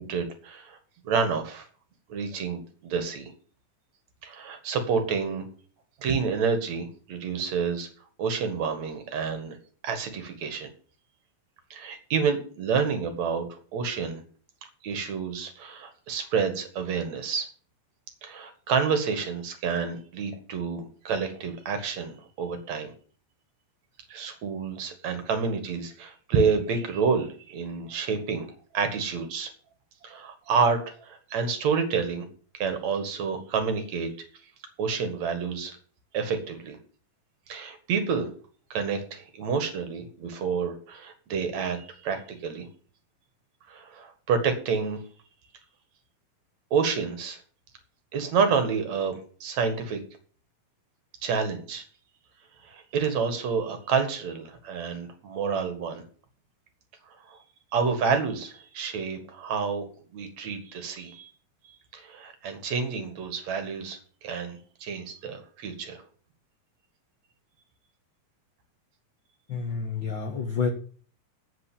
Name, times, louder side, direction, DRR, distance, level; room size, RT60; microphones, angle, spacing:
voice 1, 0.1-0.8 1.0-1.7 2.1-3.3 4.2-5.5 6.0-7.9 8.2-9.6 9.8-10.7 11.7-14.2 14.8-17.5 18.2-22.9 24.1-28.5 28.7-29.5 30.0-32.3 32.5-34.1 34.8-35.8 36.1-36.8 37.5-38.3 38.7-42.7 43.7-45.0 46.7-47.4 48.1-49.2 49.4-50.0 51.2-51.8 52.6-56.0 57.3-57.4 57.7-59.8 60.1-61.3 61.9-66.0, right 5 dB, 55° right, 7 dB, 2.8 m, -29 dB
voice 2, 69.5-70.7, left 5 dB, 90° left, 5 dB, 1.0 m, -29 dB
8.4 x 8.0 x 8.5 m, 0.43 s
omnidirectional pair, 4.0 m